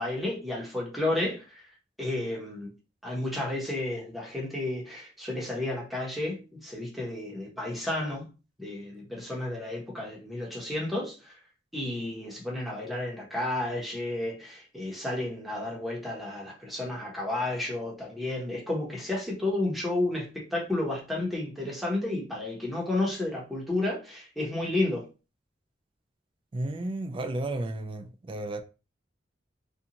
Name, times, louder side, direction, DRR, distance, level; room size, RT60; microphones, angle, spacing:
voice 1, 0.0-1.7 2.0-2.7 3.0-8.2 8.6-11.4 11.7-25.1, left 2 dB, ahead, 0.8 m, -32 dB
voice 2, 26.5-28.6, right 2 dB, 30° right, 0.3 m, -33 dB
2.5 x 2.3 x 2.8 m
head